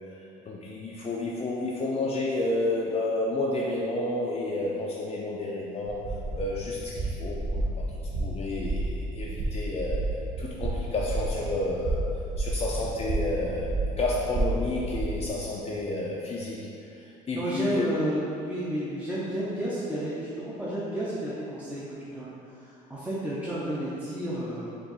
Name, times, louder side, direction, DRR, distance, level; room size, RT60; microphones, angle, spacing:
voice 1, 0.2-6.0 6.4-10.0 10.4-12.1 12.4-16.6 16.9-17.9, left 2 dB, 30° left, -4 dB, 0.5 m, -31 dB
sound 1, 5.9-15.3, right 2 dB, 40° right, 0.8 m, -31 dB
voice 2, 17.3-24.8, right 1 dB, 5° right, -8 dB, 0.8 m, -32 dB
4.5 x 2.5 x 4.0 m, 2.7 s
supercardioid pair, 70°, 19 cm